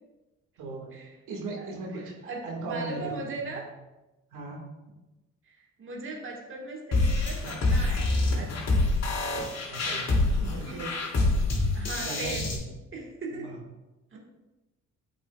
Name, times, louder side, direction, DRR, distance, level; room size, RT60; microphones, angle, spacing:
voice 1, 0.6-0.9 1.3-2.1 2.4-3.1 3.4-3.5 4.3-4.6 9.7-10.9 12.0-12.6 13.4-13.6, right 2 dB, 85° right, 0 dB, 1.8 m, -37 dB
voice 2, 1.5-3.7 5.5-8.6 9.8-10.0 10.6-10.9 11.7-12.5 12.9-13.5 14.1-14.2, right 3 dB, 45° right, -1 dB, 1.6 m, -39 dB
sound 1, 6.9-12.6, left 2 dB, 60° left, 2.5 m, -26 dB
8.7 x 7.6 x 2.3 m, 1.0 s
cardioid pair, 90°, 30 cm